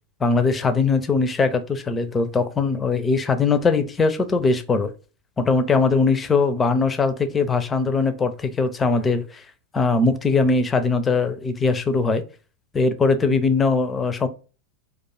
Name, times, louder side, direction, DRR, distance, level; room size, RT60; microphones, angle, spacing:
voice 1, 0.2-4.9 5.4-9.4 9.7-12.2 12.7-14.3, left 4 dB, 15° left, 0.4 m, -21 dB
2.5 x 2.3 x 3.9 m
figure-of-eight pair, 90°, 0 cm